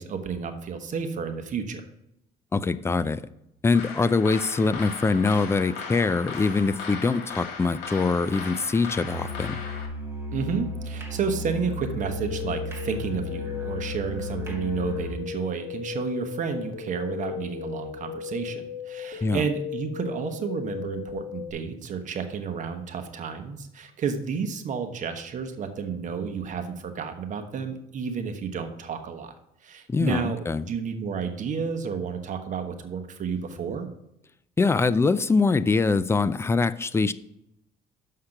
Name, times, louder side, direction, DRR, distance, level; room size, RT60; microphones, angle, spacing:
voice 1, 0.0-1.8 10.3-29.3 29.6-33.9, right 6 dB, 45° right, 7 dB, 1.1 m, -31 dB
voice 2, 2.5-3.2 3.6-9.6 19.2-19.5 29.9-30.7 34.6-37.1, left 4 dB, 15° left, 15 dB, 0.4 m, -23 dB
sound 1, 3.7-9.9, left 5 dB, 80° left, 1.8 m, -37 dB
Musical instrument, 8.9-15.2, left 2 dB, 15° right, 1.4 m, -35 dB
sound 2, 12.0-21.5, left 8 dB, 60° left, 1.3 m, -36 dB
6.6 x 5.7 x 5.8 m, 0.81 s
cardioid pair, 110°, 17 cm